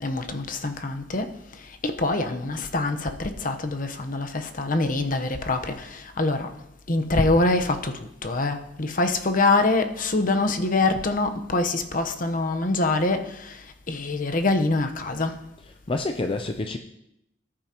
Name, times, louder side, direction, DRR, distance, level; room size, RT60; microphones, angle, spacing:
voice 1, 0.0-1.3 1.8-6.5 6.9-7.9 8.2-13.6 13.9-15.4, left 2 dB, 50° left, 1.0 m, -24 dB
voice 2, 15.6-16.8, left 2 dB, 30° left, 0.5 m, -28 dB
19.0 x 8.7 x 2.9 m
head